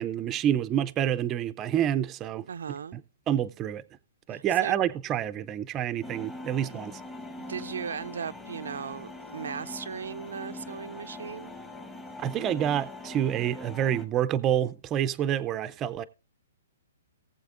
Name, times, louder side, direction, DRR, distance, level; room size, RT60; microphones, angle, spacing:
voice 1, 0.0-2.5 2.9-3.0 3.3-3.8 4.3-7.0 12.2-16.0, right 10 dB, 20° right, 0.4 m, -28 dB
voice 2, 2.5-3.0 4.3-4.8 7.4-11.5, right 7 dB, 80° right, 0.4 m, -37 dB
sound 1, 6.0-14.1, left 2 dB, 10° left, 0.9 m, -42 dB
18.5 x 7.5 x 2.5 m
hypercardioid pair, 165°, 0 cm